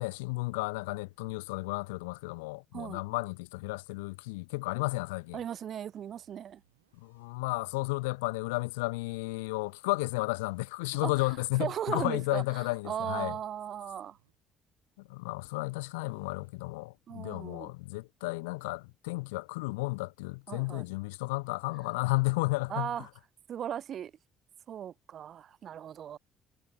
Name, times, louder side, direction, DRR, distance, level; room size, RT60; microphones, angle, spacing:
voice 1, 0.0-5.4 7.0-13.4 15.0-22.9, left 24 dB, 80° left, 0.4 m, -33 dB
sound 1, 4.7-8.7 9.3-14.6 15.5-16.6, right 12 dB, 85° right, 7.9 m, -73 dB
voice 2, 5.3-6.6 11.0-11.1 11.6-14.2 17.1-17.7 20.5-20.8 22.7-23.1 23.5-24.1 24.7-26.2, right 9 dB, 55° right, 0.5 m, -37 dB
hypercardioid pair, 50°, 0 cm